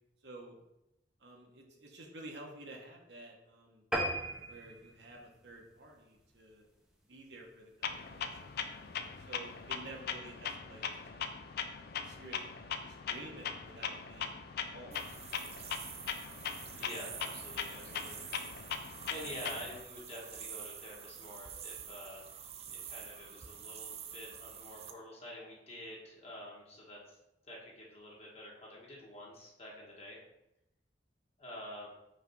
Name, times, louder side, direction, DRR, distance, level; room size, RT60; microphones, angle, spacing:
voice 1, 0.2-0.6 1.2-6.6 7.1-8.6 9.2-11.5 12.0-12.4 12.8-15.1 15.8-16.2 16.7-17.0 17.2-17.4 17.8-18.0, right 2 dB, 65° right, 0 dB, 1.2 m, -52 dB
sound 1, 3.9-6.7 7.1-7.3 7.8-7.9 8.2-8.3 8.5-8.6, right 1 dB, 5° right, 0.8 m, -38 dB
Clock, 7.8-19.8, left 6 dB, 60° left, 0.4 m, -40 dB
sound 2, 14.9-24.9, right 8 dB, 35° right, 0.5 m, -47 dB
voice 2, 16.7-18.2 18.7-22.3 22.7-27.2 27.5-30.2 31.4-31.9, left 1 dB, 35° left, -4 dB, 1.6 m, -48 dB
5.1 x 3.4 x 5.4 m, 0.89 s
head